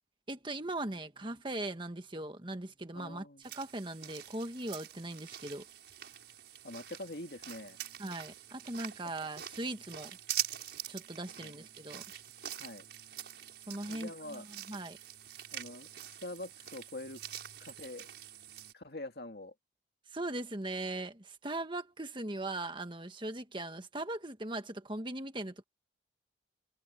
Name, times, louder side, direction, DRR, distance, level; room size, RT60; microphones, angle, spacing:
voice 1, 0.3-5.6 8.0-10.2 10.9-12.0 13.7-15.0 20.1-25.6, right 2 dB, 25° right, 1.7 m, -39 dB
voice 2, 2.9-3.4 6.6-7.8 9.0-9.1 11.4-11.5 12.6-12.8 13.9-14.4 15.5-17.2 17.6-18.1 18.7-19.5, left 1 dB, 60° left, 2.0 m, -45 dB
sound 1, 3.4-18.7, right 11 dB, 65° right, 6.0 m, -44 dB
head